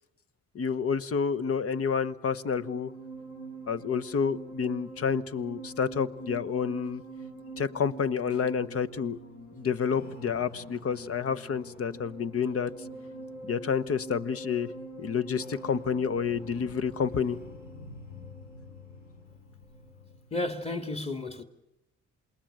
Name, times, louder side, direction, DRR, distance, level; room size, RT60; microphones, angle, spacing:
voice 1, 0.5-2.9 3.7-7.0 7.6-9.2 9.5-12.7 13.4-14.7 15.0-17.4, left 6 dB, 50° left, 1.2 m, -29 dB
sound 1, 2.0-20.4, right 2 dB, 65° left, 6.7 m, -44 dB
voice 2, 20.3-21.4, left 2 dB, 20° left, 2.7 m, -32 dB
27.5 x 20.5 x 8.9 m
cardioid pair, 90°, 30 cm